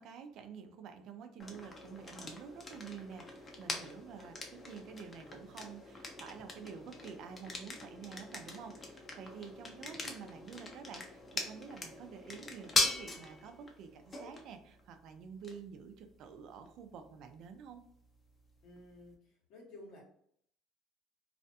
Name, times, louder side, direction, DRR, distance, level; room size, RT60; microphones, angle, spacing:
voice 1, 0.0-17.8, right 6 dB, 65° right, 7 dB, 0.4 m, -49 dB
sound 1, 1.4-19.1, left 2 dB, 30° left, 0.6 m, -42 dB
voice 2, 18.6-20.0, left 2 dB, 75° left, -1 dB, 1.1 m, -53 dB
2.4 x 2.2 x 2.7 m, 0.65 s
supercardioid pair, 105°, 0 cm